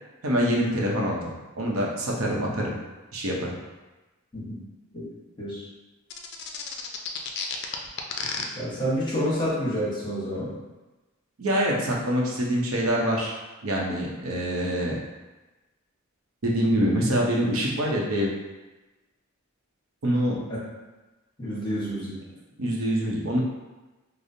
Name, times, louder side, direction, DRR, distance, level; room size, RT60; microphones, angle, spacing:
voice 1, 0.2-2.8 3.1-3.5 11.4-13.3 13.6-15.0 16.4-18.3 20.0-20.4 22.6-23.5, equal, 75° right, -2 dB, 0.7 m, -25 dB
sound 1, 6.1-8.4, left 6 dB, 50° left, 0.4 m, -31 dB
voice 2, 8.5-10.6 20.5-20.6 21.4-22.2, equal, 20° left, -8 dB, 1.0 m, -28 dB
5.0 x 2.0 x 2.7 m, 1.1 s
head